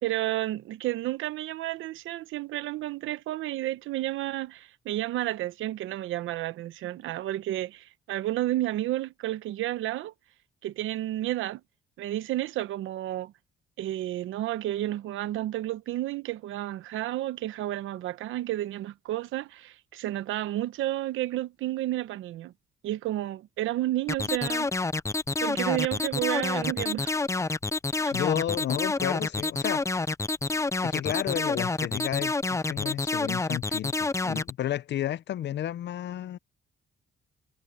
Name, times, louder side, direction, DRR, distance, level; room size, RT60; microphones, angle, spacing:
voice 1, 0.0-10.1 10.6-11.6 12.0-13.3 13.8-22.5 22.8-24.7 25.4-27.2 28.0-28.1, right 15 dB, 85° right, 1.0 m, -31 dB
sound 1, 24.1-34.5, left 3 dB, 15° left, 0.6 m, -28 dB
voice 2, 28.1-29.8 30.8-36.4, left 11 dB, 60° left, 0.6 m, -32 dB
cardioid pair, 90°, 20 cm